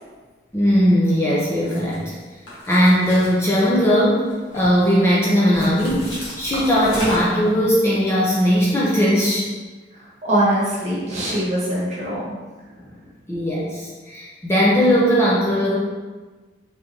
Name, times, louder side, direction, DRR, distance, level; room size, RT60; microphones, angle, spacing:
voice 1, 0.5-2.0 2.7-4.3 4.5-6.1 6.4-9.4 13.3-15.8, equal, 15° left, -7 dB, 0.5 m, -18 dB
sound 1, 1.6-1.9 2.5-3.9 4.3-4.9 5.5-7.5, left 1 dB, 90° left, 1.4 m, -33 dB
voice 2, 9.9-12.3, right 1 dB, 35° right, -7 dB, 1.2 m, -22 dB
3.8 x 3.2 x 2.7 m, 1.3 s
head